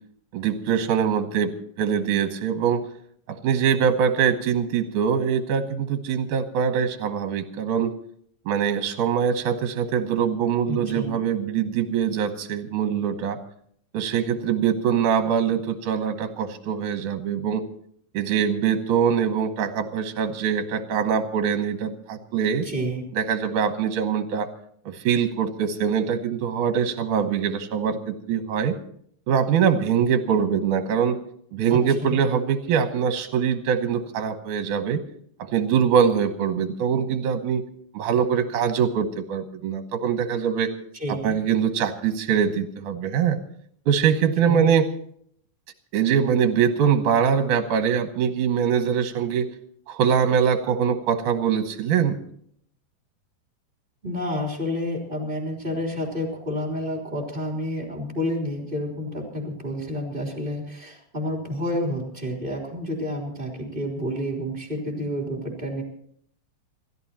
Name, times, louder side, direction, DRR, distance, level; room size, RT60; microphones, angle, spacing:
voice 1, 0.3-2.8 3.3-7.9 8.5-13.4 13.9-17.6 18.1-22.7 23.2-24.5 24.9-28.7 29.3-31.2 31.5-35.0 35.4-37.6 37.9-40.7 41.1-43.4 43.9-44.9 45.9-49.5 49.9-52.2, right 7 dB, 70° right, 7 dB, 2.5 m, -23 dB
voice 2, 10.7-11.2 22.6-23.0 31.7-32.2 40.9-41.4 44.4-44.7 54.0-65.8, left 1 dB, 15° right, 1 dB, 3.4 m, -29 dB
28.0 x 14.0 x 3.0 m, 0.64 s
omnidirectional pair, 3.8 m